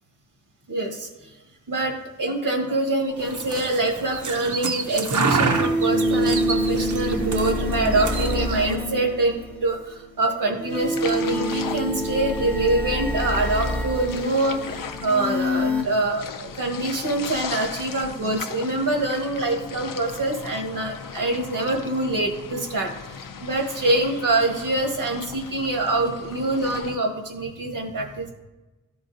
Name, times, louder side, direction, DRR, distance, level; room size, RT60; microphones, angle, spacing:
voice 1, 0.7-1.3 1.7-22.9 23.4-28.3, right 2 dB, 85° right, 0 dB, 1.4 m, -25 dB
sound 1, 3.1-3.2 5.3-9.7 10.6-15.8, equal, 5° left, 0.6 m, -26 dB
sound 2, 3.2-8.7, right 4 dB, 60° right, 0.8 m, -28 dB
sound 3, 10.7-27.0, left 6 dB, 75° left, 0.6 m, -38 dB
13.0 x 4.7 x 2.7 m, 1.1 s
wide cardioid pair, 90°, 33 cm